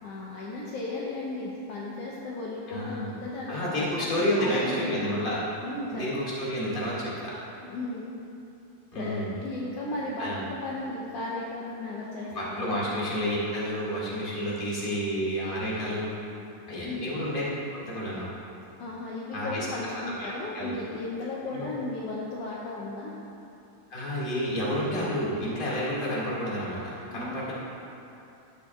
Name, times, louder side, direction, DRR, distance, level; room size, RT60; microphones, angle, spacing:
voice 1, 0.0-3.9 4.4-5.2 5.6-6.1 7.6-8.1 8.9-9.2 9.4-12.3 12.6-12.7 16.8-17.1 18.8-23.2 27.1-27.4, left 2 dB, 80° left, -4 dB, 1.4 m, -35 dB
voice 2, 2.7-3.1 3.5-5.4 5.9-7.3 8.9-9.3 10.2-10.4 12.3-16.1 16.7-17.4 17.7-18.3 19.3-20.8 21.5-21.7 23.9-27.5, equal, 20° left, -7 dB, 1.5 m, -30 dB
12.5 x 8.6 x 2.4 m, 2.8 s
omnidirectional pair, 3.7 m